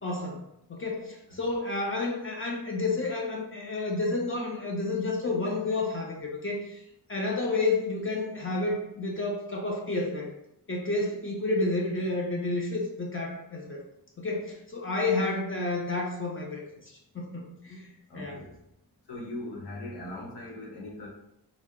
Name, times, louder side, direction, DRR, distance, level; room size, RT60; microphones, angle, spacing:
voice 1, 0.0-0.4 0.7-6.8 7.1-10.3 10.7-13.8 14.2-16.6 17.1-17.9 18.1-18.4, left 2 dB, 30° left, -1 dB, 0.5 m, -30 dB
voice 2, 18.1-18.5 19.1-21.1, left 1 dB, 70° left, -1 dB, 0.9 m, -40 dB
2.7 x 2.0 x 3.5 m, 0.80 s
wide cardioid pair, 135°, 41 cm